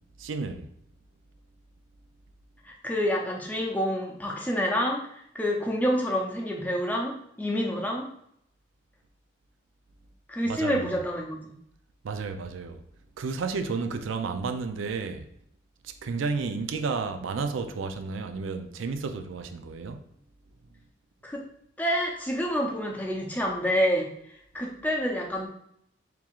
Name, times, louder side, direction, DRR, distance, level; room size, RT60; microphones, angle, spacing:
voice 1, 0.2-0.6 10.4-10.9 12.0-12.8 13.2-15.3 15.8-20.0, right 4 dB, 80° right, 0.4 m, -32 dB
voice 2, 2.6-8.1 10.3-11.5 21.2-21.4 21.8-24.1 24.5-25.5, equal, 10° left, 0.5 m, -28 dB
4.5 x 3.5 x 2.4 m
head